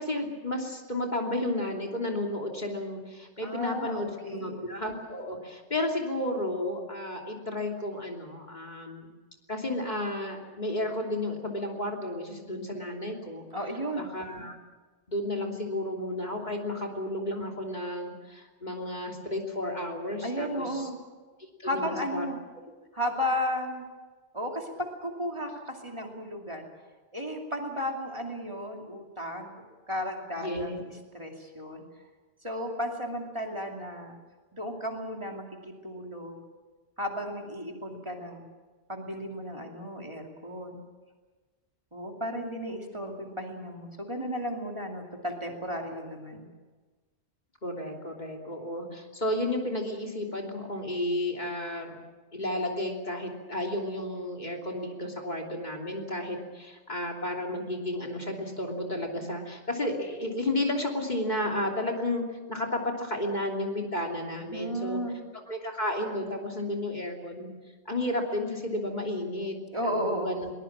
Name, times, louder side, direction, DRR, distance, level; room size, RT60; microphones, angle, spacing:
voice 1, 0.0-9.1 9.5-13.5 13.9-14.6 15.1-20.9 21.6-22.3 30.4-30.8 47.6-52.0 52.3-65.0 65.5-67.5 67.8-69.6 69.8-70.5, left 1 dB, 40° left, 3 dB, 3.2 m, -32 dB
voice 2, 3.4-4.6 13.5-14.0 20.2-21.0 21.6-22.4 22.9-23.8 24.3-24.7 25.0-26.7 27.1-29.5 29.9-30.8 31.1-31.8 32.4-34.1 34.5-36.4 37.0-38.4 38.9-40.8 41.9-46.4 64.5-65.2 69.7-70.4, equal, 25° right, 1 dB, 2.8 m, -34 dB
22.5 x 20.5 x 7.4 m, 1.3 s
omnidirectional pair, 1.1 m